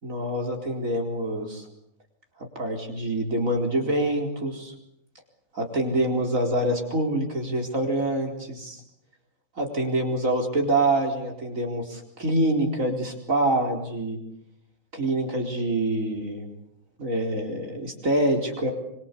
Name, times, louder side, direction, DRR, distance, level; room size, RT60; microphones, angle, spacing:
voice 1, 0.0-1.6 2.4-4.7 5.5-8.8 9.6-14.2 14.9-16.5 17.0-18.7, right 1 dB, 65° right, 2 dB, 4.8 m, -26 dB
25.0 x 24.5 x 8.4 m, 0.78 s
omnidirectional pair, 1.5 m